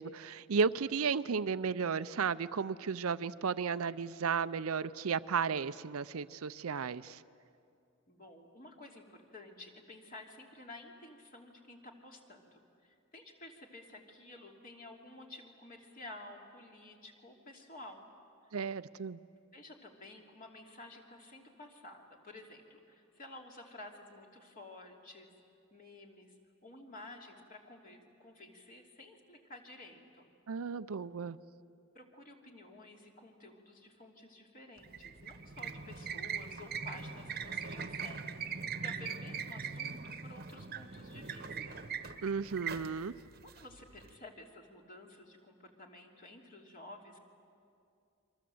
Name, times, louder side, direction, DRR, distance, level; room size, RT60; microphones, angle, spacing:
voice 1, 0.0-7.2 18.5-19.2 30.5-31.4 42.2-43.1, right 5 dB, 90° right, 15 dB, 0.6 m, -34 dB
voice 2, 8.1-18.1 18.4-18.5 19.3-25.3 25.7-26.3 26.6-30.3 31.9-41.9 43.4-47.2, left 2 dB, 40° left, 1 dB, 3.0 m, -52 dB
sound 1, 34.8-44.1, right 6 dB, 45° right, 1.1 m, -41 dB
30.0 x 24.0 x 7.8 m, 2.4 s
head